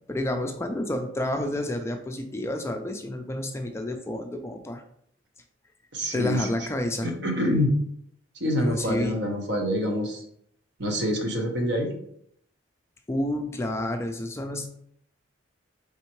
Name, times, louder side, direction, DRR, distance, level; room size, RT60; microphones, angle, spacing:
voice 1, 0.1-4.8 6.1-7.1 8.6-9.2 13.1-14.7, left 1 dB, 15° left, 5 dB, 0.3 m, -29 dB
voice 2, 5.9-6.5 7.0-7.8 8.4-10.2 10.8-11.9, equal, 60° right, 3 dB, 0.8 m, -26 dB
4.3 x 3.5 x 3.0 m, 0.69 s
head